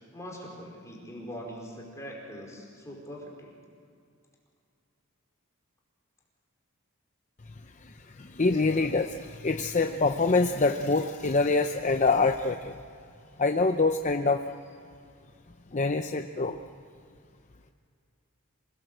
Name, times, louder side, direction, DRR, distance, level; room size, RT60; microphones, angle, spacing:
voice 1, 0.1-3.5, equal, 15° left, -1 dB, 4.8 m, -42 dB
voice 2, 7.8-12.8 13.4-14.4 15.7-16.6, left 3 dB, 35° left, 5 dB, 0.7 m, -25 dB
27.0 x 19.5 x 8.0 m, 2.3 s
head